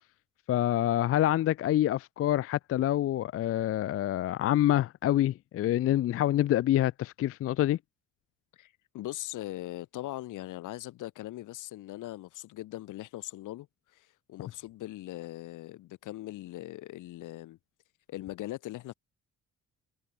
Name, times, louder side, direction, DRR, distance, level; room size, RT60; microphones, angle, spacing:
voice 1, 0.5-7.8, left 13 dB, 50° left, 0.4 m, -26 dB
voice 2, 8.5-13.7 13.9-17.6 18.1-18.9, left 16 dB, 90° left, 3.7 m, -40 dB
cardioid pair, 90°, 30 cm